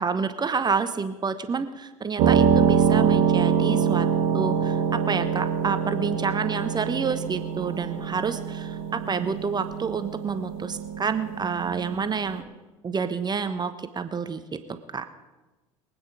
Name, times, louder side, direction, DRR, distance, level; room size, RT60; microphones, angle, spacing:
voice 1, 0.0-4.1 4.3-12.4 12.8-15.1, right 5 dB, 25° right, 10 dB, 1.1 m, -28 dB
sound 1, 2.2-12.4, right 7 dB, 55° right, 1.7 m, -25 dB
23.5 x 9.1 x 5.1 m, 1.2 s
figure-of-eight pair, 65°, 17 cm